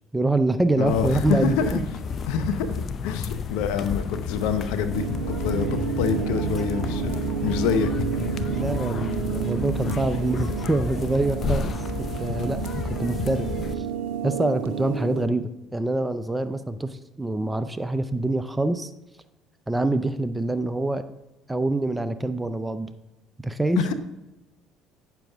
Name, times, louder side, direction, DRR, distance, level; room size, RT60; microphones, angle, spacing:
voice 1, 0.1-1.8 8.4-11.7 12.2-12.6 13.0-13.5 13.8-13.9 14.2-18.9 19.7-21.0 21.5-22.9 23.4-23.8, right 2 dB, 10° right, 11 dB, 0.6 m, -25 dB
voice 2, 0.8-1.8 2.3-2.7 3.0-7.9 8.3-8.4 23.8-23.9, left 6 dB, 80° left, 10 dB, 0.8 m, -26 dB
sound 1, 0.8-13.7, left 5 dB, 45° left, 0.6 m, -31 dB
sound 2, 4.9-15.2, right 8 dB, 85° right, 0.9 m, -30 dB
8.9 x 6.9 x 3.5 m, 1.0 s
hypercardioid pair, 70°, 0 cm